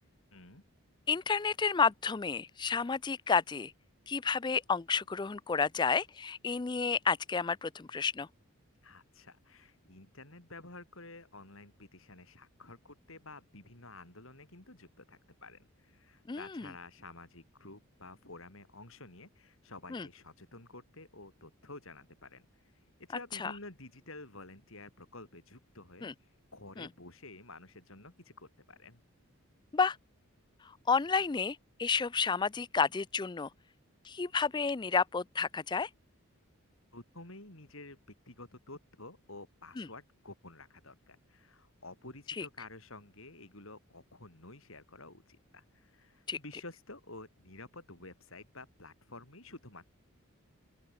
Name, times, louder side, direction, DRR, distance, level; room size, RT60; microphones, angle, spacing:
voice 1, 0.3-0.6 8.8-22.5 23.0-26.1 26.5-29.0 36.9-38.0 38.3-49.9, left 2 dB, 65° left, 5.3 m, -51 dB
voice 2, 1.1-3.7 4.1-8.3 16.3-16.7 19.9-20.1 23.3-23.5 26.0-26.1 26.8-26.9 29.7-30.0 30.6-33.5 34.0-35.9 39.8-39.9 42.4-42.5 46.3-46.4, left 5 dB, 20° left, 0.3 m, -31 dB
open air
head